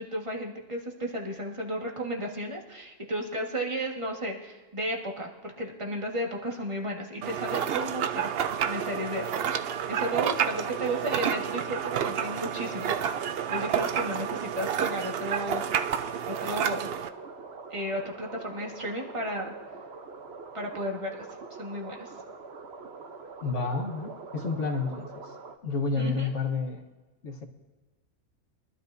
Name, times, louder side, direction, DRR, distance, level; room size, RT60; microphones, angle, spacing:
voice 1, 0.0-8.2 8.7-9.2 9.5-15.8 16.3-16.9 17.7-19.5 20.5-21.2 21.6-22.1 26.0-26.3, right 1 dB, 20° right, 0 dB, 1.5 m, -34 dB
sound 1, 7.2-17.1, right 8 dB, 65° right, 0.6 m, -30 dB
sound 2, 7.5-25.6, right 4 dB, 50° right, 1.0 m, -44 dB
voice 2, 23.4-25.2 25.6-26.8 27.2-27.4, left 4 dB, 55° left, 2 dB, 1.5 m, -30 dB
23.0 x 12.5 x 2.7 m, 1.2 s
omnidirectional pair, 1.6 m